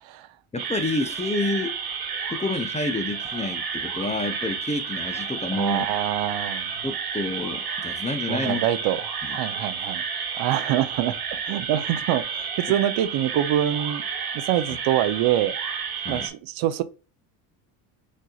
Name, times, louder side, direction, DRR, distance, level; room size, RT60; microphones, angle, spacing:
voice 1, 0.5-1.8 2.3-5.9 6.8-8.6 9.3-9.4 14.7-14.8 16.0-16.3, left 2 dB, 15° left, 0.6 m, -29 dB
sound 1, 0.6-16.3, right 6 dB, 50° right, 1.3 m, -31 dB
voice 2, 5.5-6.7 8.3-9.0 9.3-10.0 10.3-14.0 14.3-15.6 16.1-16.8, right 12 dB, 65° right, 0.7 m, -25 dB
6.2 x 2.7 x 2.3 m
supercardioid pair, 85°, 50 cm